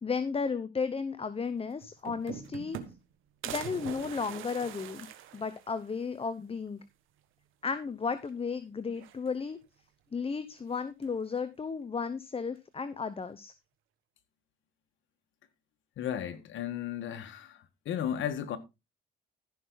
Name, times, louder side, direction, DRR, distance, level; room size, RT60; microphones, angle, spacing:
voice 1, 0.0-2.8 3.4-5.1 5.3-6.8 7.6-9.6 10.1-13.5, left 5 dB, 30° left, 0.9 m, -34 dB
sound 1, 1.5-1.6 1.8-3.1 3.4-6.0 6.4-6.5 6.8-6.9 8.1-8.5 8.9-9.6 10.7-11.2, right 10 dB, 85° right, 1.7 m, -43 dB
voice 2, 16.0-17.6 17.8-18.6, left 9 dB, 75° left, 1.6 m, -34 dB
15.0 x 6.0 x 4.0 m
cardioid pair, 90°, 20 cm